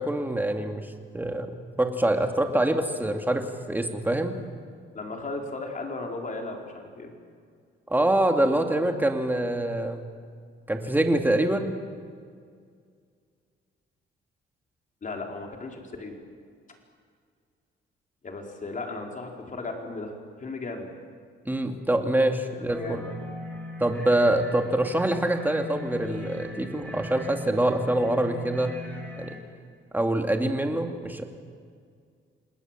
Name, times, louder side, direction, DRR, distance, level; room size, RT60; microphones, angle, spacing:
voice 1, 0.0-1.5 1.8-4.4 7.9-10.0 10.7-11.7 21.5-23.0 23.8-28.8 29.2-29.4 29.9-31.2, right 1 dB, 10° right, 4 dB, 2.5 m, -25 dB
voice 2, 4.9-7.1 15.0-16.2 18.2-20.1 20.4-20.9 22.5-23.1, left 3 dB, 40° left, 2 dB, 4.5 m, -36 dB
sound 1, 22.7-29.3, left 2 dB, 10° left, 5.6 m, -40 dB
27.5 x 20.0 x 7.5 m, 2.1 s
cardioid pair, 90°, 20 cm